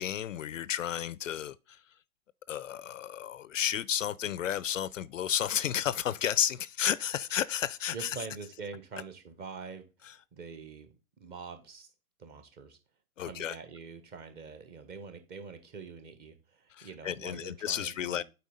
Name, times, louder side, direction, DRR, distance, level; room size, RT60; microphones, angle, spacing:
voice 1, 0.0-1.8 2.5-8.2 10.0-10.2 13.2-13.6 16.7-18.2, left 10 dB, 60° left, 0.5 m, -32 dB
voice 2, 7.9-11.9 12.2-12.8 13.2-18.2, right 5 dB, 20° right, 1.2 m, -45 dB
8.3 x 4.4 x 3.8 m
hypercardioid pair, 125°, 44 cm